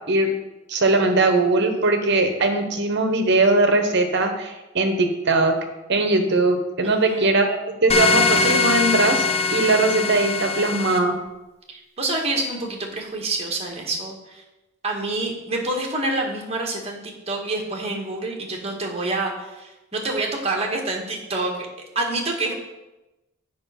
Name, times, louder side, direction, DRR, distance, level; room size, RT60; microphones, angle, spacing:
voice 1, 0.7-5.6 5.9-9.2 9.5-11.2, right 2 dB, 60° right, 6 dB, 1.1 m, -20 dB
voice 2, 6.8-7.3 11.7-14.4 14.8-21.7 21.9-22.5, right 2 dB, 30° right, 1 dB, 1.6 m, -27 dB
sound 1, 7.9-11.0, left 4 dB, 30° left, 0.8 m, -21 dB
8.0 x 5.2 x 5.7 m, 1.0 s
head